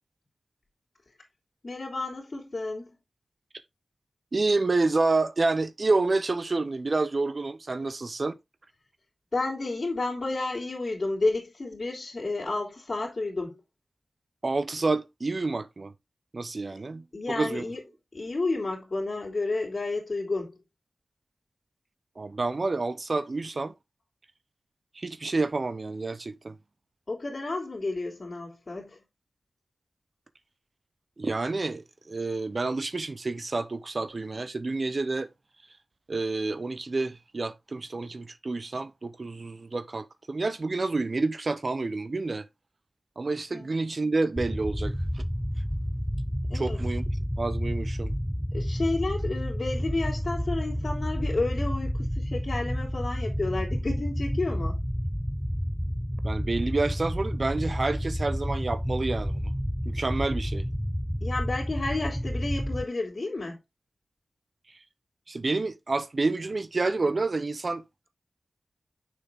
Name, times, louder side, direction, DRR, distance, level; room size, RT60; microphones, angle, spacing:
voice 1, 1.6-2.9 9.3-13.6 17.1-17.8 18.1-20.6 27.1-29.0 43.5-43.7 46.5-46.8 48.5-54.8 61.2-63.6, left 2 dB, 50° left, 3.1 m, -31 dB
voice 2, 4.3-8.3 14.4-15.9 16.3-17.6 22.2-23.7 24.9-26.6 31.2-35.3 36.1-42.5 43.2-45.2 46.5-47.0 47.4-48.1 56.2-59.5 59.9-60.7 64.7-64.8 65.3-67.8, right 3 dB, 55° right, 0.7 m, -29 dB
sound 1, 44.4-62.8, equal, ahead, 0.6 m, -30 dB
6.7 x 6.3 x 3.6 m
cardioid pair, 55°, 0 cm